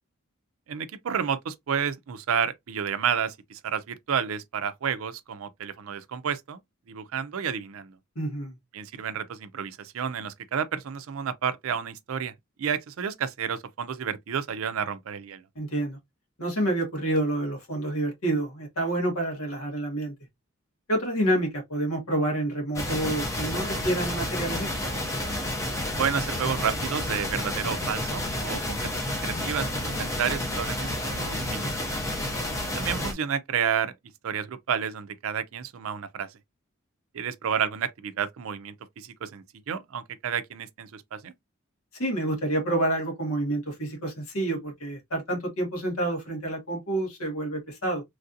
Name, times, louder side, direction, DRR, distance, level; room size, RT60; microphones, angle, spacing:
voice 1, 0.7-6.6 6.9-7.9 8.7-12.3 12.6-15.4 26.0-31.7 32.7-33.9 34.2-36.3 37.1-41.3, right 7 dB, 70° right, 0.4 m, -31 dB
voice 2, 8.1-8.6 15.5-16.0 16.4-20.1 20.9-24.7 42.0-48.0, right 1 dB, 85° left, 1.5 m, -28 dB
sound 1, 22.8-33.1, left 1 dB, 15° left, 0.6 m, -30 dB
3.2 x 2.5 x 2.6 m
head